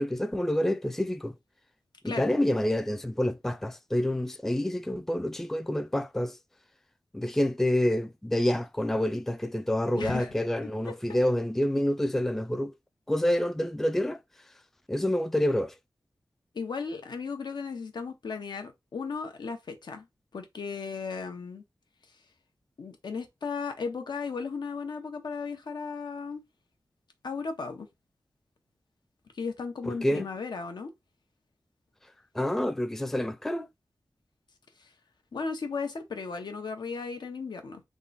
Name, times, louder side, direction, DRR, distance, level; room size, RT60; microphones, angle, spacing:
voice 1, 0.0-1.3 2.0-6.4 7.1-12.7 13.1-14.2 14.9-15.7 29.9-30.3 32.3-33.7, left 1 dB, 5° left, 0.3 m, -28 dB
voice 2, 9.9-10.3 10.9-11.0 16.5-20.0 20.3-21.6 22.8-26.4 27.2-27.9 29.3-30.9 34.8-34.9 35.3-37.8, left 5 dB, 85° left, 0.8 m, -35 dB
3.6 x 2.1 x 3.9 m
wide cardioid pair, 95°, 7 cm